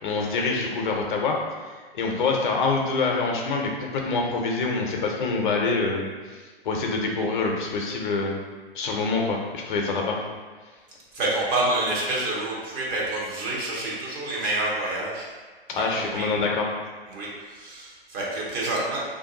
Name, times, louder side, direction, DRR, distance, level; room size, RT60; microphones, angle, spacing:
voice 1, 0.0-6.1 6.4-8.4 8.7-10.2 15.7-16.7, left 3 dB, 55° left, 1 dB, 0.6 m, -26 dB
voice 2, 11.1-15.3 15.8-16.3 17.1-19.0, right 2 dB, 30° right, -5 dB, 0.8 m, -28 dB
2.5 x 2.3 x 3.7 m, 1.4 s
figure-of-eight pair, 115°, 30 cm